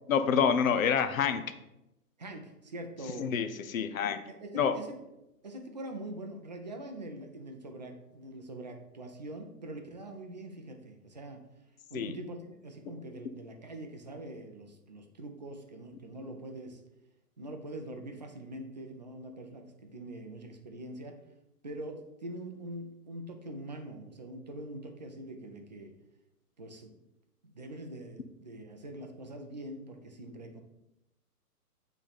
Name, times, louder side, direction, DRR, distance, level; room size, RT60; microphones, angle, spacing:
voice 1, 0.1-1.4 3.2-4.2 4.6-4.7 11.9-12.1, left 7 dB, 60° left, 10 dB, 0.7 m, -27 dB
voice 2, 2.2-3.3 4.3-5.0 5.4-11.4 11.9-16.8 17.4-21.2 21.6-25.9 26.6-26.9 27.4-30.6, right 1 dB, 30° right, 4 dB, 0.4 m, -43 dB
8.5 x 3.3 x 4.1 m, 0.90 s
hypercardioid pair, 160°, 47 cm